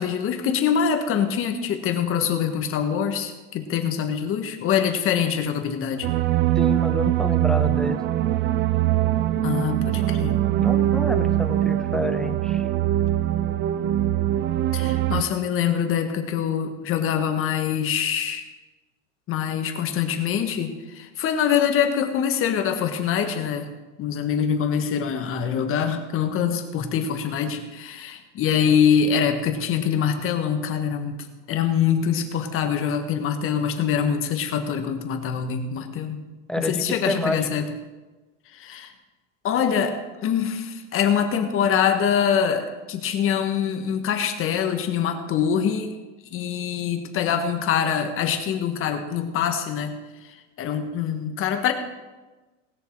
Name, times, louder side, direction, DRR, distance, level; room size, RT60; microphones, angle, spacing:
voice 1, 0.0-6.1 9.4-10.4 14.7-18.5 19.3-23.7 24.0-31.2 31.5-36.2 36.6-37.7 38.5-38.9 39.4-45.9 46.3-49.9 50.2-51.7, left 8 dB, 35° left, 6 dB, 1.6 m, -24 dB
sound 1, 6.0-15.2, right 13 dB, 30° right, 0.5 m, -22 dB
voice 2, 6.6-8.0 10.6-12.7 36.5-37.5, equal, ahead, 7 dB, 0.8 m, -28 dB
19.0 x 6.8 x 4.7 m, 1.2 s
supercardioid pair, 125°, 38 cm